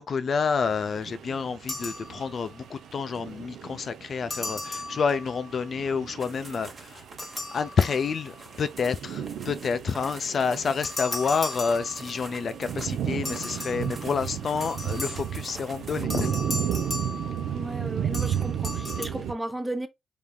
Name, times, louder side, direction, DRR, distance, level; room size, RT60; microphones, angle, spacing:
voice 1, 0.0-7.1 7.5-16.4, left 5 dB, 50° left, 0.4 m, -29 dB
sound 1, 0.6-19.3, right 9 dB, 75° right, 0.5 m, -34 dB
sound 2, 1.7-2.6 4.3-5.6 7.2-8.6 10.8-12.5 13.2-15.5 16.1-17.8 18.1-19.1, left 2 dB, 20° left, 0.8 m, -36 dB
sound 3, 6.2-16.0, right 3 dB, 35° right, 1.0 m, -46 dB
voice 2, 17.5-19.9, right 1 dB, 10° right, 0.5 m, -34 dB
3.6 x 3.2 x 2.2 m
cardioid pair, 85°, 0 cm